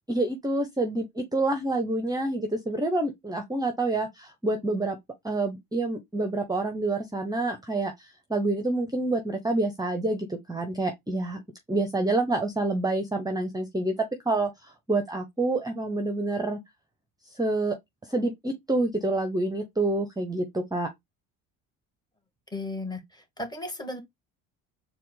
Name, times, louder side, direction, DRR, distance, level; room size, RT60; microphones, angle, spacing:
voice 1, 0.1-5.0 5.2-11.4 11.7-13.9 14.2-16.6 17.4-17.8 18.1-20.9, right 2 dB, 10° right, 0.8 m, -27 dB
voice 2, 22.5-24.0, left 2 dB, 10° left, 1.5 m, -35 dB
4.2 x 2.4 x 3.8 m
supercardioid pair, 85°, 39 cm